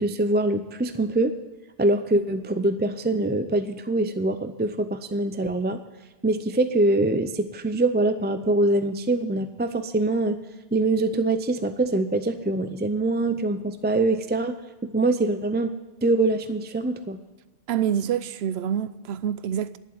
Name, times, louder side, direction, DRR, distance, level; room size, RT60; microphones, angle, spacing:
voice 1, 0.0-1.4 1.8-5.8 6.2-10.4 10.7-14.6 14.9-15.7 16.0-17.2, right 2 dB, 15° right, 0.3 m, -24 dB
voice 2, 17.7-19.8, right 9 dB, 90° right, 0.9 m, -26 dB
11.0 x 7.3 x 9.4 m
omnidirectional pair, 1.0 m